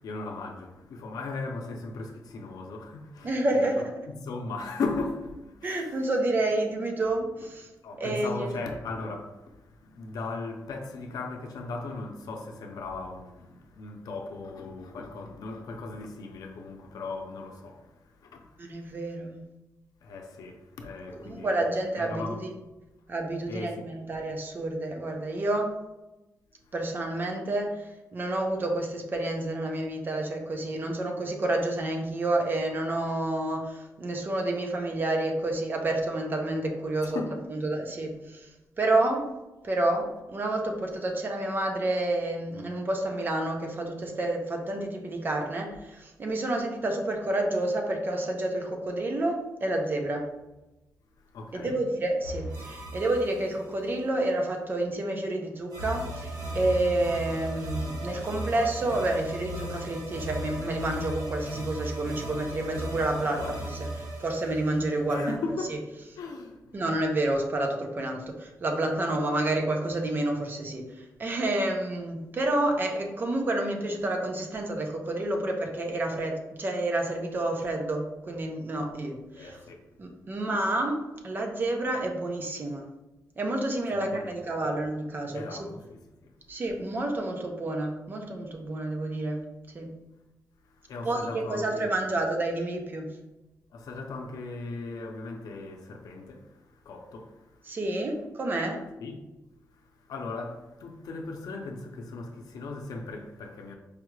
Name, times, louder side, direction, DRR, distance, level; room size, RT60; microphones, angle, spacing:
voice 1, 0.0-6.1 7.4-7.5 7.8-18.9 20.0-22.4 23.5-23.9 37.0-37.4 51.2-51.8 62.8-63.6 65.1-65.8 66.1-66.8 79.4-79.9 83.9-84.3 84.6-84.7 85.3-86.4 90.6-92.0 93.7-97.8 99.0-99.3 99.7-103.7, left 3 dB, 85° left, 0.6 m, -38 dB
voice 2, 3.2-4.1 5.6-7.7 8.0-8.5 18.6-19.4 21.3-22.5 23.1-25.7 26.7-37.2 37.5-38.5 38.8-39.3 39.6-50.3 51.5-63.7 64.2-65.3 66.7-79.6 80.0-82.8 83.4-85.7 86.5-89.4 89.7-90.0 91.0-93.1 97.7-98.8, right 2 dB, 30° right, 0.5 m, -29 dB
sound 1, 52.2-54.1 55.7-65.4, right 1 dB, 70° right, 0.9 m, -37 dB
4.8 x 2.3 x 3.1 m
wide cardioid pair, 175°, 6 cm